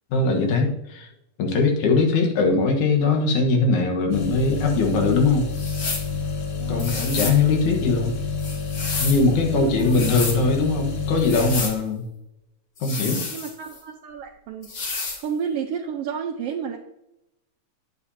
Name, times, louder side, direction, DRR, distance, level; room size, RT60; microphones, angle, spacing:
voice 1, 0.1-1.1 1.4-5.5 6.7-8.1 9.0-12.0 12.8-13.2, left 3 dB, 80° left, 3 dB, 2.8 m, -21 dB
sound 1, 4.1-11.6, left 5 dB, 60° left, 1.6 m, -28 dB
sound 2, 5.5-6.1 6.8-7.4 8.4-9.3 9.8-10.4 11.2-11.8 12.8-13.8 14.6-15.2, left 4 dB, 45° left, 2.0 m, -30 dB
voice 2, 6.5-6.9 9.4-9.9 13.3-14.7 15.2-16.8, right 7 dB, 75° right, 2 dB, 1.5 m, -31 dB
10.0 x 9.4 x 2.8 m, 0.87 s
omnidirectional pair, 3.4 m